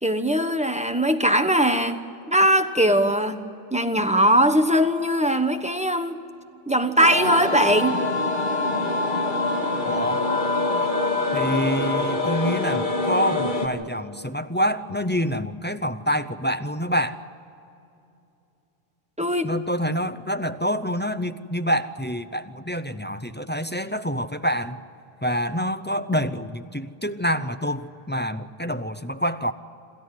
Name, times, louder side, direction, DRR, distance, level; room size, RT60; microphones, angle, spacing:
voice 1, 0.0-2.0 2.3-3.4 3.7-6.2 6.7-8.0 19.2-19.5, equal, 5° right, 6 dB, 1.0 m, -20 dB
sound 1, 7.0-13.7, left 2 dB, 50° left, 2.2 m, -24 dB
voice 2, 9.8-10.3 11.3-17.2 19.4-24.8 25.2-29.5, equal, 15° left, 9 dB, 0.6 m, -26 dB
27.5 x 13.5 x 9.7 m, 2.7 s
omnidirectional pair, 1.0 m